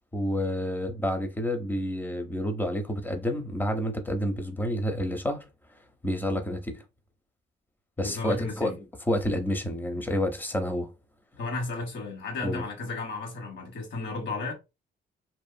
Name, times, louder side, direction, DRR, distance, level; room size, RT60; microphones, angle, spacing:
voice 1, 0.1-5.5 6.0-6.8 8.0-10.9 12.4-12.6, left 1 dB, 10° left, 0.6 m, -29 dB
voice 2, 8.0-8.8 11.4-14.5, left 3 dB, 70° left, 1.3 m, -33 dB
2.6 x 2.4 x 2.2 m
cardioid pair, 90°, 20 cm